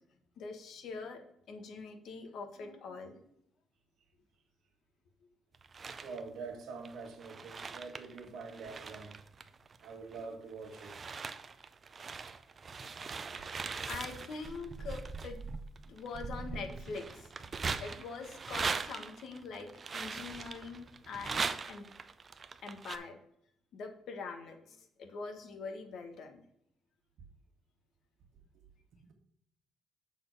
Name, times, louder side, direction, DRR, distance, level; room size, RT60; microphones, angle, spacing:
voice 1, 0.4-3.2 13.9-15.4 15.9-17.5 17.8-21.9 22.6-23.2 23.7-26.4, left 4 dB, 65° left, 1.3 m, -44 dB
sound 1, 5.5-6.2 6.8-10.2 10.6-23.0, right 5 dB, 30° right, 0.5 m, -41 dB
voice 2, 6.0-9.2 9.8-11.1, right 4 dB, 75° right, 1.5 m, -45 dB
6.9 x 4.2 x 6.5 m
cardioid pair, 145°, 0 cm